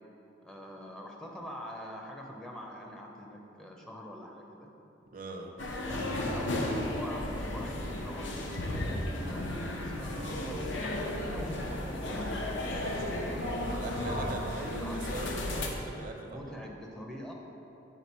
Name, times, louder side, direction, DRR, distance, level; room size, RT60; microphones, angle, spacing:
voice 1, 0.4-4.7 5.8-15.0 16.3-17.3, equal, 5° left, -1 dB, 0.5 m, -44 dB
voice 2, 5.1-5.5 13.7-16.5, right 2 dB, 45° right, 3 dB, 0.5 m, -41 dB
sound 1, 5.6-15.7, left 1 dB, 85° left, 0.7 m, -34 dB
8.3 x 3.8 x 4.2 m, 2.9 s
head